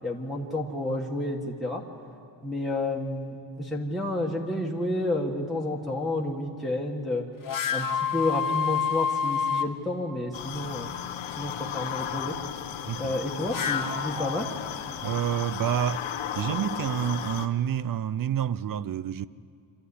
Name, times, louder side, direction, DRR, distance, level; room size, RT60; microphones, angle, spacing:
voice 1, 0.0-1.8 2.4-7.3 7.7-10.9 11.4-12.3 13.0-14.5, left 1 dB, ahead, 1.7 m, -30 dB
sound 1, 7.4-9.7 13.2-15.0, left 7 dB, 45° left, 1.3 m, -28 dB
sound 2, 10.3-17.5, left 9 dB, 90° left, 1.2 m, -35 dB
voice 2, 15.0-16.0 16.3-19.3, right 9 dB, 45° right, 0.5 m, -28 dB
25.5 x 14.0 x 9.9 m
wide cardioid pair, 140°, 46 cm